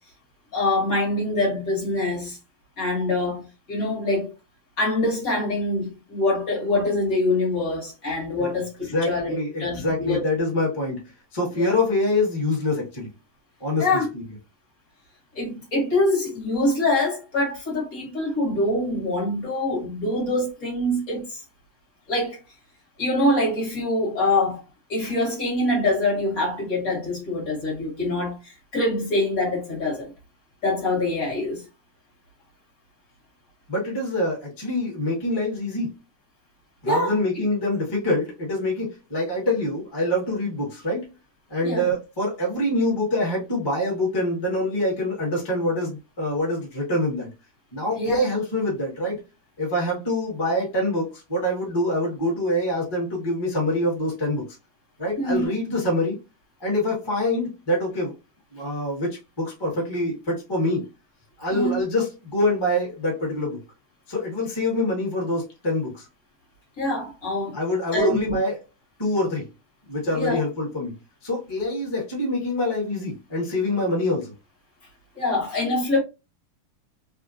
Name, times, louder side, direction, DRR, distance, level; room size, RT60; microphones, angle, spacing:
voice 1, 0.5-2.4 2.8-4.3 4.8-8.7 9.1-10.2 11.5-11.7 13.8-14.1 15.3-21.4 22.1-22.4 23.0-24.6 24.9-30.1 30.6-31.6 36.8-37.2 41.6-41.9 48.0-48.2 55.2-55.5 61.5-61.8 66.8-67.6 67.9-68.4 70.1-70.4 75.2-76.0, left 2 dB, 50° left, 1.7 m, -24 dB
voice 2, 8.9-11.0 11.3-13.1 13.6-14.0 33.7-35.9 36.8-41.1 41.5-47.3 47.7-49.2 49.6-54.4 55.0-56.2 56.6-58.1 58.5-60.9 61.4-63.6 64.1-66.0 67.5-68.5 69.0-69.5 69.9-70.9 71.2-74.3, left 1 dB, 15° left, 1.0 m, -25 dB
3.6 x 2.2 x 2.6 m
omnidirectional pair, 2.2 m